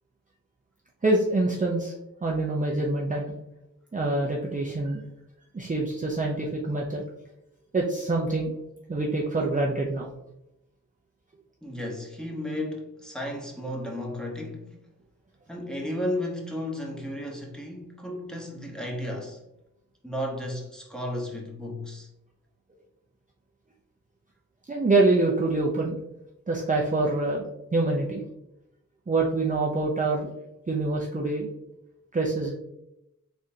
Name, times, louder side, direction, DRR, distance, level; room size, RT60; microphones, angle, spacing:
voice 1, 1.0-1.9 2.2-3.3 3.9-5.0 5.5-7.0 7.7-8.5 8.9-10.0 24.7-26.0 26.5-27.4 27.7-28.2 29.1-30.3 30.7-31.5 32.1-32.5, right 2 dB, 25° right, 0.6 m, -25 dB
voice 2, 11.6-14.7 15.5-19.4 20.0-22.1, left 1 dB, ahead, 1.1 m, -33 dB
3.7 x 3.3 x 2.7 m
cardioid pair, 40°, 33 cm